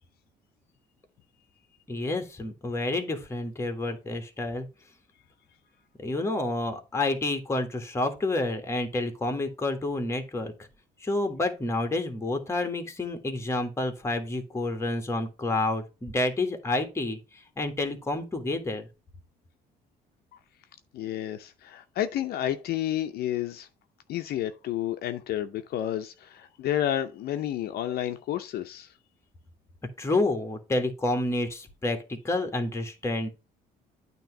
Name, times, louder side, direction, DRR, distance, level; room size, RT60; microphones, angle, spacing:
voice 1, 1.9-4.7 6.0-10.5 11.0-18.9 30.0-33.3, left 2 dB, 15° left, 1.6 m, -29 dB
voice 2, 20.9-23.7 24.1-28.9, left 11 dB, 70° left, 0.7 m, -30 dB
9.0 x 3.0 x 6.0 m
cardioid pair, 110°, 17 cm